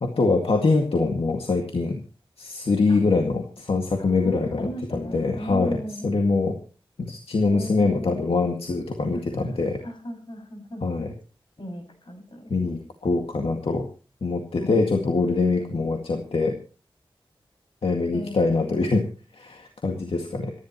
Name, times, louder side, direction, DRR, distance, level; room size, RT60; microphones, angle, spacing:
voice 1, 0.0-2.0 2.4-5.8 6.0-6.5 7.0-9.8 10.8-11.1 12.5-13.9 14.2-16.6 17.8-19.1 19.3-20.5, left 3 dB, 80° left, 3 dB, 2.0 m, -24 dB
voice 2, 4.0-6.1 7.4-8.2 9.1-9.6 9.8-10.9 11.6-12.8 14.6-15.9 18.1-18.7, equal, 60° left, 4 dB, 6.3 m, -37 dB
26.5 x 11.5 x 3.1 m, 0.36 s
wide cardioid pair, 90°, 10 cm